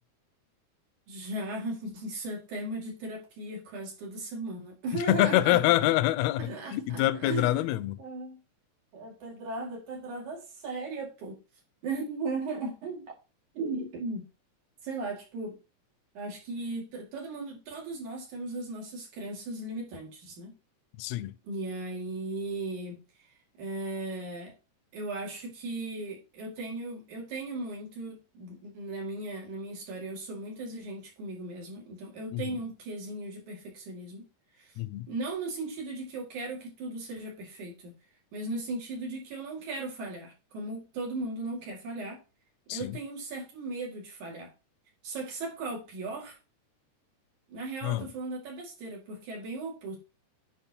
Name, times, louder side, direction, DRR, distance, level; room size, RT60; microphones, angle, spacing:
voice 1, 1.1-5.9 6.4-7.6 8.0-8.4 8.9-11.4 11.8-13.1 13.5-14.3 14.8-15.6 16.2-20.5 21.4-23.3 23.6-24.5 24.9-34.2 34.6-34.7 35.1-38.0 38.3-42.2 42.7-44.5 45.0-46.4 47.5-50.0, right 2 dB, 70° right, 3.7 m, -37 dB
voice 2, 4.9-8.0 21.0-21.3 32.3-32.6 34.8-35.1 42.7-43.0 47.8-48.1, left 15 dB, 80° left, 1.6 m, -26 dB
9.4 x 5.3 x 2.9 m
omnidirectional pair, 3.6 m